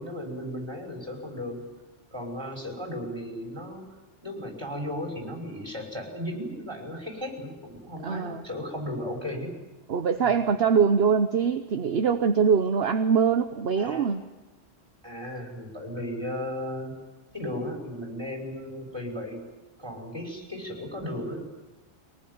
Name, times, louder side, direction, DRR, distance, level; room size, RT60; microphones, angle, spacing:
voice 1, 0.0-1.7 2.1-3.9 4.2-9.6 10.2-10.3 13.8-14.1 15.0-17.0 17.3-19.5 19.8-21.5, left 1 dB, 20° right, 1 dB, 5.6 m, -35 dB
voice 2, 8.0-8.4 9.9-14.2, right 6 dB, 60° right, 8 dB, 1.2 m, -23 dB
23.5 x 19.5 x 9.6 m, 1.1 s
omnidirectional pair, 1.2 m